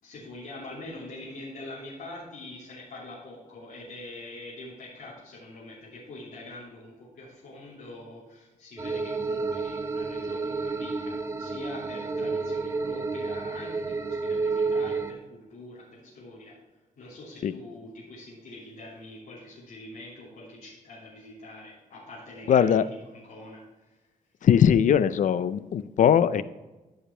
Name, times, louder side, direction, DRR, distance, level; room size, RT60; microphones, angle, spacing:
voice 1, 0.0-16.5 17.0-22.8 23.1-24.0, left 2 dB, 85° left, -8 dB, 2.9 m, -44 dB
sound 1, 8.8-15.1, right 4 dB, 20° right, 0.6 m, -30 dB
voice 2, 22.5-22.9 24.4-26.4, left 8 dB, 65° left, 16 dB, 0.5 m, -20 dB
14.0 x 5.2 x 4.4 m, 1.1 s
wide cardioid pair, 135°, 14 cm